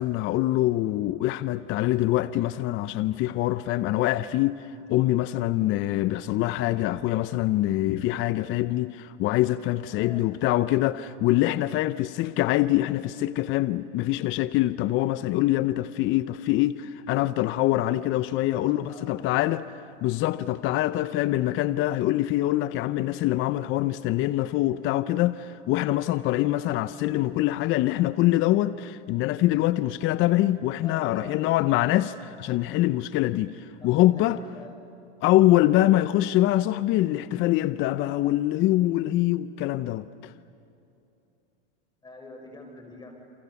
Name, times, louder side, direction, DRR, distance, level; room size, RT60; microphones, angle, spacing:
voice 1, 0.0-4.6 4.9-19.7 20.0-34.4 35.2-40.3, left 15 dB, 35° left, 0.7 m, -24 dB
voice 2, 9.8-10.2 18.4-19.5 30.8-31.6 33.8-34.8 35.7-35.9 42.0-43.2, left 2 dB, 10° left, 6.3 m, -45 dB
29.0 x 27.5 x 7.1 m
supercardioid pair, 130°, 36 cm